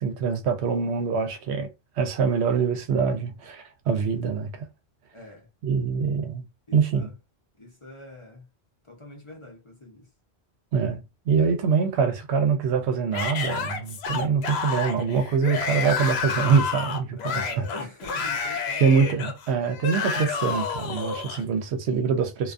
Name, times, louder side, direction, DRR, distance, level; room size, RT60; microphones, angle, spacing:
voice 1, 0.0-1.7 2.0-4.7 5.6-6.4 6.7-7.1 10.7-17.4 18.8-22.5, right 6 dB, 80° right, 0.9 m, -24 dB
voice 2, 5.1-5.5 6.7-7.1 7.6-8.4 8.8-10.1 17.2-19.1, left 1 dB, 35° left, 0.7 m, -43 dB
Yell / Screaming, 13.1-21.4, left 5 dB, 75° left, 0.8 m, -30 dB
2.3 x 2.3 x 2.5 m
omnidirectional pair, 1.1 m